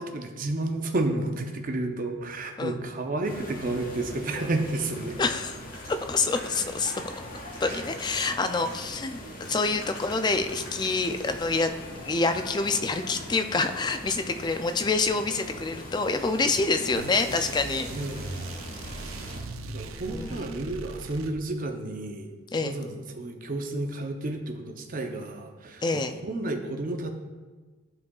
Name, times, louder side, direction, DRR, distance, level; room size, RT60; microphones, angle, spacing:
voice 1, 0.0-5.2 7.6-7.8 17.5-17.6 17.9-18.3 19.7-27.1, right 2 dB, 40° right, 4 dB, 0.6 m, -31 dB
sound 1, 3.2-19.4, left 1 dB, 45° left, 1.2 m, -41 dB
voice 2, 5.2-5.6 5.9-7.0 7.6-9.2 9.5-11.7 12.0-17.9 20.1-20.5 22.5-22.7 25.8-26.1, left 3 dB, 20° left, 8 dB, 0.3 m, -27 dB
sound 2, 5.7-9.2 9.4-11.7, left 1 dB, 80° left, 1.7 m, -46 dB
sound 3, 16.9-21.7, right 3 dB, 90° right, 0.5 m, -39 dB
11.0 x 4.7 x 2.3 m, 1.3 s
head